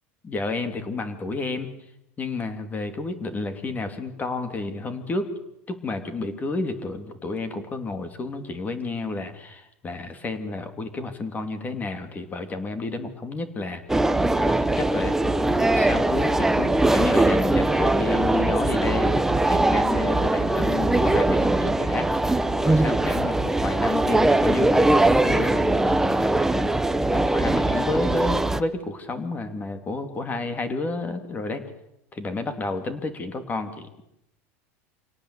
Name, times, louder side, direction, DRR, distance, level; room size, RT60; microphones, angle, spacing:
voice 1, 0.2-1.7 2.2-5.3 5.7-13.8 14.3-26.7 27.1-31.6 32.1-33.9, left 3 dB, 20° left, 9 dB, 3.0 m, -31 dB
sound 1, 13.9-28.6, right 2 dB, 5° right, 0.9 m, -21 dB
26.0 x 18.0 x 8.4 m, 0.82 s
supercardioid pair, 125°, 7 cm